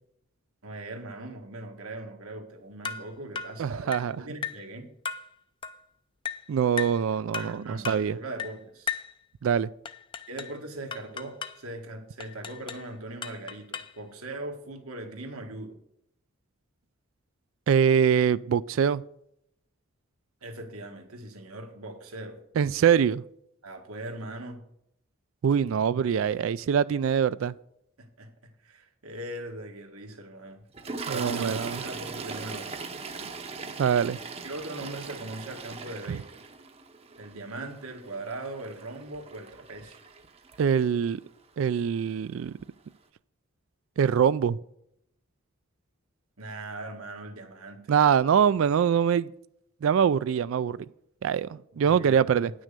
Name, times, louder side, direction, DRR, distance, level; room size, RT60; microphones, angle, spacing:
voice 1, 0.6-4.9 7.4-9.0 10.3-15.8 20.4-22.4 23.6-24.6 28.0-28.3 28.6-30.6 31.1-32.9 34.4-36.4 37.2-40.0 46.4-47.9 51.7-52.5, right 2 dB, 90° right, 3 dB, 1.7 m, -40 dB
sound 1, 2.8-3.1 3.4-3.6 3.9-4.1 4.4-4.7 5.1-5.3 5.6-5.8 6.3-6.5 6.8-7.0 7.3-7.6 7.8-8.1 8.4-8.6 8.9-9.1 9.9-10.6 10.9-11.6 12.2-12.9 13.2-14.0, left 6 dB, 25° left, 0.4 m, -36 dB
voice 2, 3.6-4.2 6.5-8.2 9.4-9.7 17.7-19.0 22.6-23.2 25.4-27.5 31.1-31.8 33.8-34.2 36.1-36.2 40.6-41.2 41.6-42.5 44.0-44.6 47.9-49.3 49.8-50.8 51.2-52.5, right 7 dB, 65° right, 17 dB, 0.3 m, -23 dB
Toilet flush, 30.7-41.1 42.0-42.2 42.4-42.6, right 4 dB, 25° right, 0.7 m, -40 dB
10.0 x 6.3 x 6.7 m, 0.76 s
head